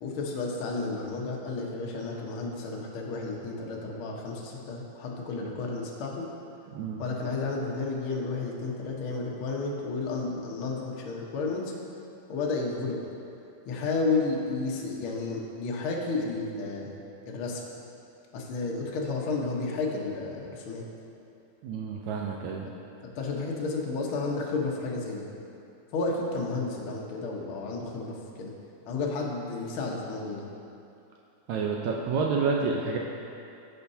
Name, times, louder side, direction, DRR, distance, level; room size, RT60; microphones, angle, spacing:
voice 1, 0.0-6.3 7.0-11.7 12.3-13.0 13.6-16.9 17.3-17.6 18.3-20.8 23.0-25.2 25.9-28.5 28.9-30.4, left 3 dB, 90° left, -2 dB, 1.1 m, -32 dB
voice 2, 6.7-7.0 21.6-22.7 31.5-33.0, right 5 dB, 85° right, -1 dB, 1.6 m, -29 dB
16.0 x 6.6 x 2.8 m, 2.7 s
omnidirectional pair, 4.1 m